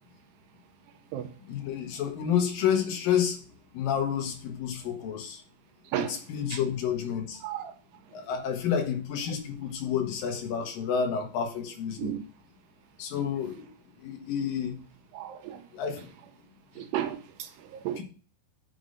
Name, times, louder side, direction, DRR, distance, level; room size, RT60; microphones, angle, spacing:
voice 1, 1.4-3.4 3.7-5.4 6.1-7.4 8.1-12.2 13.0-13.7 14.0-14.8 15.7-16.1 16.8-16.9 18.0-18.1, left 8 dB, 65° left, 2.6 m, -30 dB
voice 2, 7.4-7.7 12.0-12.2 15.1-15.6 16.8-18.0, right 11 dB, 85° right, 2.5 m, -33 dB
6.7 x 6.0 x 6.4 m
omnidirectional pair, 5.4 m